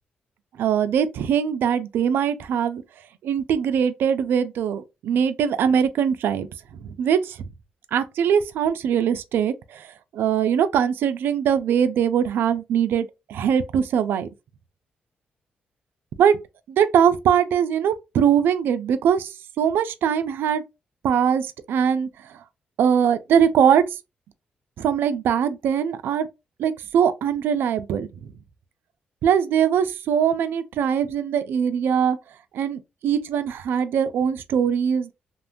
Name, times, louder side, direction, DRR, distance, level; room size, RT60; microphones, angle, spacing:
voice 1, 0.6-2.8 3.2-6.5 6.8-7.4 7.9-9.9 10.1-14.3 16.2-16.4 16.7-20.6 21.0-22.1 22.8-23.8 24.8-26.3 26.6-28.1 29.2-32.2 32.5-35.1, right 8 dB, 80° right, 0.3 m, -21 dB
2.9 x 2.1 x 2.5 m
cardioid pair, 60°, 4 cm